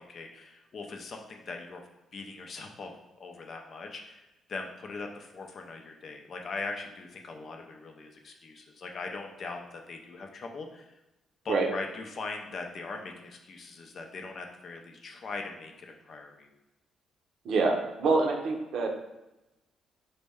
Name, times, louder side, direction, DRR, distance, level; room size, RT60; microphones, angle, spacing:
voice 1, 0.0-2.9 3.2-4.2 4.5-11.0 11.4-16.5, left 3 dB, 50° left, 3 dB, 0.5 m, -40 dB
voice 2, 17.4-18.9, right 3 dB, 70° right, 3 dB, 0.6 m, -26 dB
4.1 x 2.1 x 3.5 m, 0.97 s
cardioid pair, 90°, 0 cm